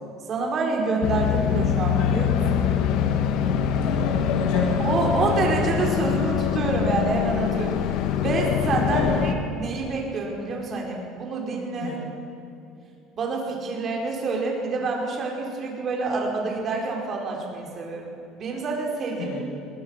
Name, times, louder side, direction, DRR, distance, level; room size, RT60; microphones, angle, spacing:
voice 1, 0.3-2.7 4.5-8.0 8.2-12.0 13.2-19.3, right 3 dB, 35° right, -1 dB, 4.8 m, -27 dB
sound 1, 1.0-9.3, left 8 dB, 65° left, 1.5 m, -24 dB
voice 2, 3.8-4.7 8.9-9.4 11.8-12.0 19.2-19.4, left 4 dB, 90° left, 0 dB, 6.1 m, -29 dB
22.0 x 19.0 x 6.6 m, 2.7 s
cardioid pair, 135°, 0 cm